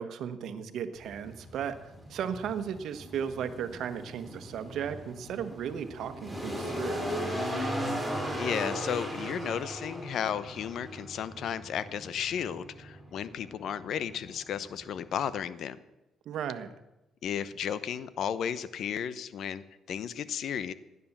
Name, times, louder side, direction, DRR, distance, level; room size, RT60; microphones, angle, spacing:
voice 1, 0.0-7.2 16.2-16.7, right 8 dB, 75° right, 10 dB, 1.3 m, -36 dB
sound 1, 1.0-15.4, equal, 5° left, 4.9 m, -38 dB
voice 2, 8.4-15.8 17.2-20.7, left 8 dB, 70° left, 16 dB, 0.9 m, -34 dB
16.5 x 9.6 x 7.3 m, 0.95 s
cardioid pair, 90°, 0 cm